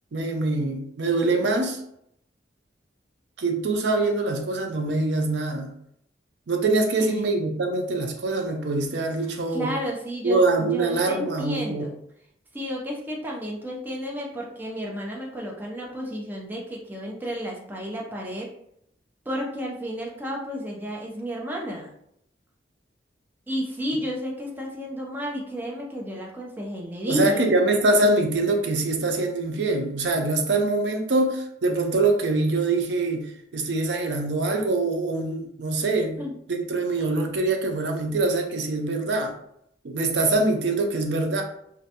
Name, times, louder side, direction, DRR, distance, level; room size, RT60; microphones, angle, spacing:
voice 1, 0.1-1.8 3.4-5.7 6.5-9.7 10.2-11.9 27.1-39.4 39.8-41.4, right 2 dB, 85° right, 4 dB, 0.5 m, -24 dB
voice 2, 9.5-10.4 10.7-11.9 12.5-18.5 19.3-21.9 23.5-27.5 36.2-36.3, equal, 10° right, -2 dB, 0.4 m, -32 dB
2.5 x 2.1 x 2.7 m, 0.73 s
head